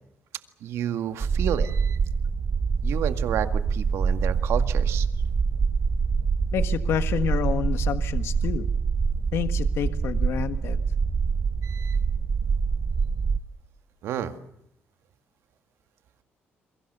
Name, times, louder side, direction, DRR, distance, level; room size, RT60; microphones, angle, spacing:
voice 1, 0.6-2.0 2.8-5.1 11.6-12.0 14.0-14.3, right 10 dB, 80° right, 9 dB, 1.9 m, -30 dB
sound 1, 1.2-13.4, right 5 dB, 35° right, 1.0 m, -25 dB
voice 2, 6.5-8.7 9.3-10.8, left 9 dB, 70° left, 10 dB, 1.5 m, -29 dB
28.5 x 23.0 x 6.9 m, 0.78 s
cardioid pair, 110°, 4 cm